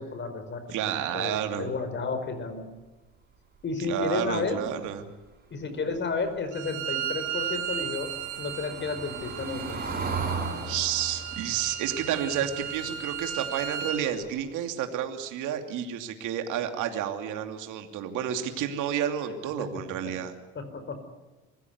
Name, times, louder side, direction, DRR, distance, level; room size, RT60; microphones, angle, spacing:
voice 1, 0.0-0.6 1.1-2.7 3.6-4.6 5.5-8.1 8.4-9.8 19.6-19.7 20.5-21.0, left 4 dB, 35° left, 9 dB, 5.0 m, -32 dB
voice 2, 0.7-1.7 3.8-5.1 10.6-20.3, right 9 dB, 60° right, 6 dB, 2.8 m, -30 dB
Bowed string instrument, 6.5-14.0, right 10 dB, 85° right, 4.6 m, -35 dB
Car passing by / Engine, 6.7-13.6 14.0-14.2 14.5-14.6, right 4 dB, 25° right, 7.8 m, -37 dB
25.0 x 16.0 x 9.5 m, 1.2 s
supercardioid pair, 100°, 33 cm